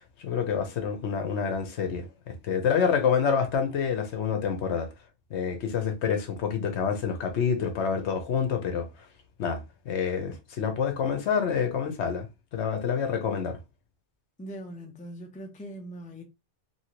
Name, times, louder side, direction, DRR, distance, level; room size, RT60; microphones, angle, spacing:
voice 1, 0.0-4.9 5.3-8.9 9.4-9.6 9.9-12.3 12.5-13.6, left 6 dB, 70° left, 1.0 m, -27 dB
voice 2, 14.4-16.2, right 1 dB, 10° left, 0.4 m, -41 dB
3.0 x 2.7 x 2.8 m
omnidirectional pair, 1.2 m